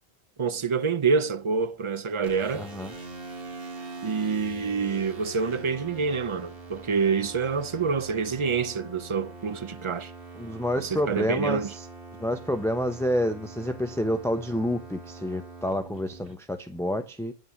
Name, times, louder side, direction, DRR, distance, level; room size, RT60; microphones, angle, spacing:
voice 1, 0.4-2.7 4.0-10.1 10.8-11.7, right 5 dB, 30° right, 0.7 m, -27 dB
sound 1, 2.2-16.3, right 3 dB, 60° right, 2.2 m, -43 dB
voice 2, 2.5-2.9 10.4-11.6 12.2-17.3, equal, 5° left, 0.8 m, -28 dB
9.6 x 9.3 x 7.1 m
omnidirectional pair, 1.1 m